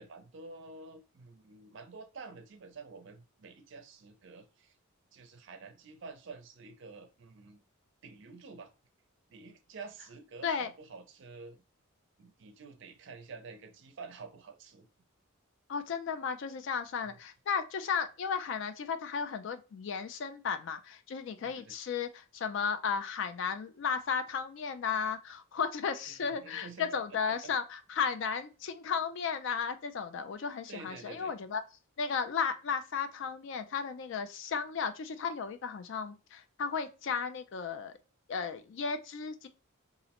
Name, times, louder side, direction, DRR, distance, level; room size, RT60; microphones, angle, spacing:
voice 1, 0.0-4.8 5.1-7.6 8.0-8.7 9.3-11.6 12.2-14.9 17.0-17.2 21.4-21.7 26.1-27.5 30.7-31.4, right 4 dB, 55° right, 0.4 m, -49 dB
voice 2, 15.7-31.6 32.0-37.9 38.3-39.5, left 6 dB, 55° left, 0.3 m, -34 dB
2.4 x 2.0 x 2.8 m
head